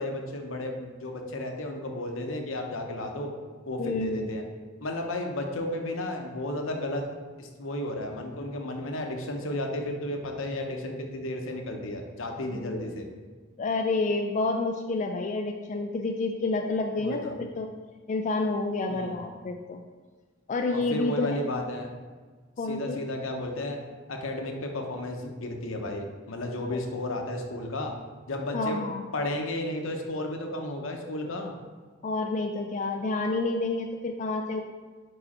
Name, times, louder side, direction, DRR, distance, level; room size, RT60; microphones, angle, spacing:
voice 1, 0.0-3.3 3.7-4.4 4.8-7.0 7.4-13.1 17.0-17.3 18.9-19.2 20.7-21.9 22.6-23.8 24.1-27.9 28.3-28.8 29.1-31.5, left 1 dB, 75° left, 3 dB, 0.8 m, -33 dB
voice 2, 3.8-4.3 12.5-12.9 13.6-17.7 18.1-19.8 20.5-21.4 22.6-23.0 26.7-26.8 28.5-29.0 32.0-34.6, left 3 dB, 35° left, 3 dB, 0.3 m, -29 dB
4.9 x 4.8 x 4.2 m, 1.4 s
head